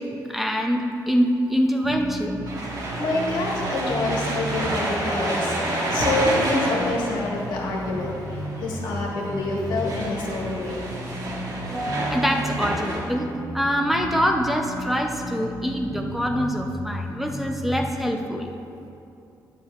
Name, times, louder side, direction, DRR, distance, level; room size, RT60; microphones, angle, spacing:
voice 1, 0.0-2.4 3.8-4.0 11.7-13.3 13.5-18.5, equal, 5° right, 2 dB, 0.6 m, -25 dB
sound 1, 1.8-17.8, equal, 80° right, 1.3 m, -34 dB
sound 2, 2.4-13.0, right 1 dB, 60° right, 1.8 m, -29 dB
voice 2, 3.0-10.9, left 2 dB, 85° left, -2 dB, 1.6 m, -27 dB
11.0 x 9.8 x 2.4 m, 2.6 s
cardioid pair, 115°, 7 cm